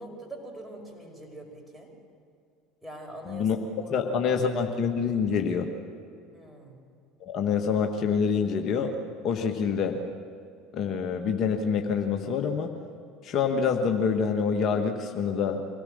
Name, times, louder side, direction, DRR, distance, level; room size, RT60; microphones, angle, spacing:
voice 1, 0.0-1.9 2.8-3.5 3.8-4.4 6.3-6.8, right 1 dB, 5° right, 1 dB, 5.5 m, -43 dB
voice 2, 3.3-3.6 3.9-5.7 7.2-8.9 9.2-10.0 10.7-12.7 13.2-15.6, left 6 dB, 45° left, 3 dB, 1.5 m, -26 dB
25.0 x 17.5 x 6.6 m, 2.4 s
figure-of-eight pair, 70°, 0 cm